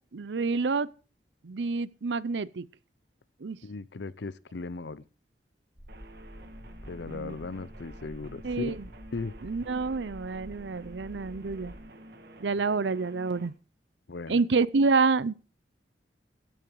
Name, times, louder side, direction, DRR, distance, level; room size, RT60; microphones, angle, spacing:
voice 1, 0.1-0.9 1.4-2.7 3.4-3.6 7.1-7.3 8.4-8.7 9.4-11.7 12.4-13.5 14.3-15.3, right 4 dB, 80° right, 0.6 m, -28 dB
voice 2, 3.6-5.0 6.8-8.8 9.1-9.3 14.1-14.4, left 3 dB, 70° left, 0.6 m, -37 dB
sound 1, 5.7-11.8, equal, 40° left, 7.0 m, -48 dB
sound 2, 5.9-13.5, right 1 dB, 60° right, 1.8 m, -50 dB
16.0 x 8.9 x 4.7 m
head